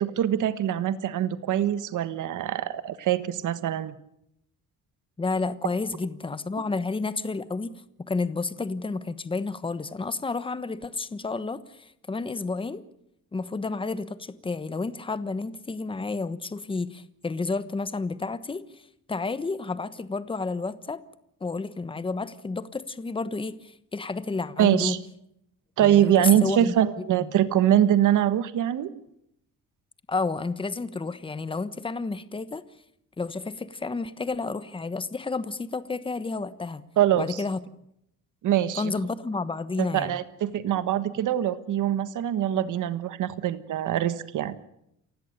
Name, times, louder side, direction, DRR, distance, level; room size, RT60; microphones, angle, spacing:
voice 1, 0.0-3.9 24.6-25.0 25.8-28.9 37.0-37.3 38.4-38.9 39.8-44.6, right 11 dB, 65° right, 1.5 m, -23 dB
voice 2, 5.2-7.7 8.1-12.8 13.3-21.0 21.4-25.0 25.8-26.7 27.2-27.3 30.1-32.6 33.2-36.8 37.1-37.6 38.8-40.2, left 3 dB, 15° left, 1.2 m, -31 dB
28.5 x 16.5 x 6.7 m
cardioid pair, 155°, 33 cm